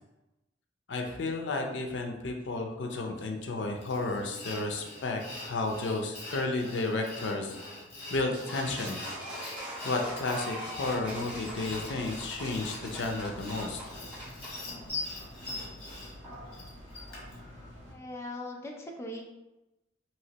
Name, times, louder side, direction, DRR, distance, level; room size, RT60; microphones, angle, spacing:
voice 1, 0.9-7.6 8.1-9.0 9.8-13.8, left 3 dB, 80° left, 2 dB, 0.5 m, -32 dB
Sawing, 3.8-17.4, left 2 dB, 65° left, 1.2 m, -43 dB
sound 1, 8.3-14.5, equal, 5° right, 1.4 m, -41 dB
sound 2, 10.8-17.9, equal, 30° right, 1.1 m, -48 dB
voice 2, 17.9-19.3, left 1 dB, 15° left, 1 dB, 0.3 m, -40 dB
3.0 x 2.9 x 2.8 m, 0.99 s
head